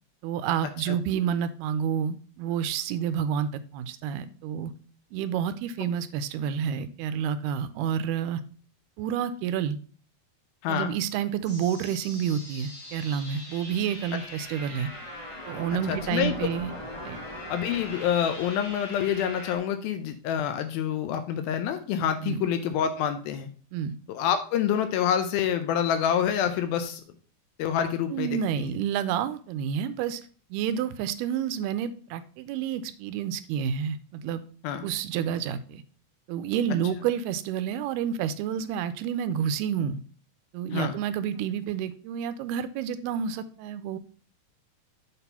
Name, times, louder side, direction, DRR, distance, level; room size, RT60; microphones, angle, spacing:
voice 1, 0.2-4.7 5.1-8.4 9.0-9.8 10.7-14.9 15.5-16.7 17.0-17.2 22.2-22.5 23.7-24.0 28.1-30.2 30.5-34.4 34.8-35.8 36.3-40.0 40.5-44.0, right 8 dB, 85° right, 12 dB, 2.5 m, -29 dB
sound 1, 11.4-19.6, left 1 dB, 20° left, 1.2 m, -41 dB
voice 2, 15.9-16.3 17.5-23.5 24.1-27.0 27.6-28.7 34.6-34.9 40.7-41.0, left 9 dB, 80° left, 9 dB, 2.3 m, -27 dB
7.0 x 4.2 x 5.4 m, 0.41 s
omnidirectional pair, 4.6 m